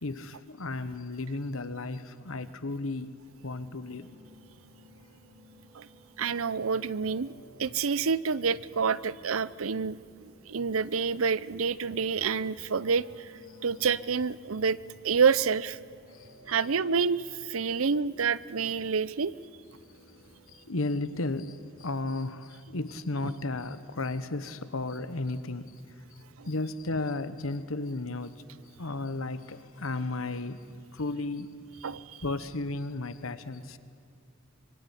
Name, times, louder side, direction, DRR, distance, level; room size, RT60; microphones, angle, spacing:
voice 1, 0.0-3.1 3.4-4.2 16.2-16.6 20.7-25.7 26.5-28.4 28.8-30.6 30.9-31.5 31.8-31.9 32.2-33.8, left 2 dB, 85° left, 13 dB, 1.2 m, -34 dB
sound 1, 3.4-21.7, equal, 35° right, 7.9 m, -56 dB
voice 2, 6.2-7.3 7.6-13.3 13.6-14.8 15.0-15.8 16.5-19.3 23.2-23.3 26.4-26.5 31.8-32.2, right 5 dB, 85° right, 18 dB, 0.7 m, -28 dB
25.5 x 23.0 x 9.8 m, 2.5 s
head